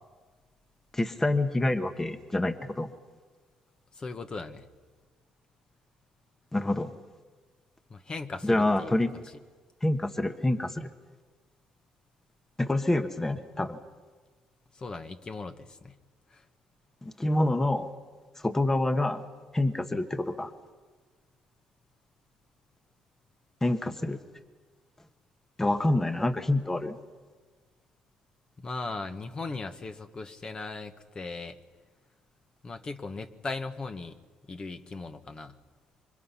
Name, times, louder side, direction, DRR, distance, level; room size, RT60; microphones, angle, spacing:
voice 1, 0.9-2.9 6.5-6.9 8.4-9.1 9.8-10.9 12.6-13.8 17.0-17.9 18.4-19.2 19.5-20.5 23.6-24.2 25.6-27.0, left 1 dB, 15° left, 8 dB, 1.3 m, -27 dB
voice 2, 3.9-4.7 7.9-9.2 14.7-16.0 16.3-16.4 28.6-31.6 32.6-34.2 34.4-35.6, left 3 dB, 35° left, 7 dB, 1.4 m, -38 dB
27.5 x 24.5 x 5.7 m, 1.4 s
supercardioid pair, 80°, 3 cm